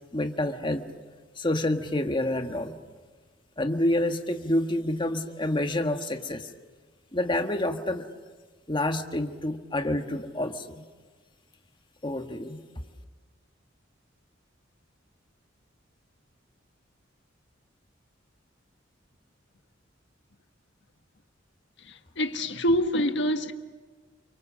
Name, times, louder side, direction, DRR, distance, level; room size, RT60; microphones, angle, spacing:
voice 1, 0.1-0.8 1.4-2.7 3.6-6.5 7.1-8.1 8.7-10.8 12.0-12.6, left 1 dB, 25° left, 1.5 m, -28 dB
voice 2, 21.8-23.5, equal, 65° left, 1.6 m, -26 dB
29.5 x 24.5 x 7.5 m
head